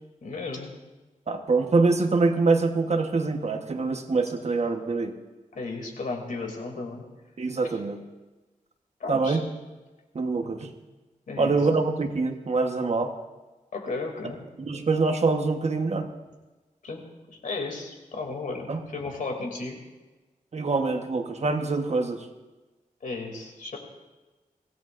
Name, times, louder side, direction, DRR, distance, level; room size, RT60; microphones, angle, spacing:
voice 1, 0.2-0.7 5.5-7.1 7.6-7.8 9.0-9.5 11.3-11.6 13.7-14.4 16.8-17.0 17.3-19.8 23.0-23.8, left 3 dB, 80° left, 2 dB, 2.8 m, -34 dB
voice 2, 1.3-5.1 7.4-8.0 9.1-9.4 10.1-10.7 11.4-13.1 14.6-16.1 18.7-18.8 20.5-22.3, right 3 dB, 55° right, 5 dB, 1.3 m, -25 dB
24.5 x 17.0 x 2.6 m, 1.2 s
wide cardioid pair, 135°, 14 cm